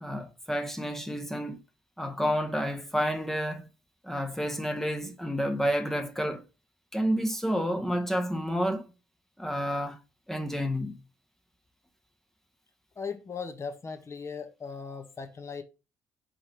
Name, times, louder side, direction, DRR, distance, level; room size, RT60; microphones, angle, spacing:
voice 1, 0.0-1.6 2.0-3.7 4.0-6.4 6.9-8.9 9.4-10.0 10.3-11.0, equal, 5° left, 0.9 m, -30 dB
voice 2, 13.0-15.6, left 5 dB, 35° left, 1.1 m, -38 dB
4.4 x 3.9 x 3.1 m
hypercardioid pair, 50°, 8 cm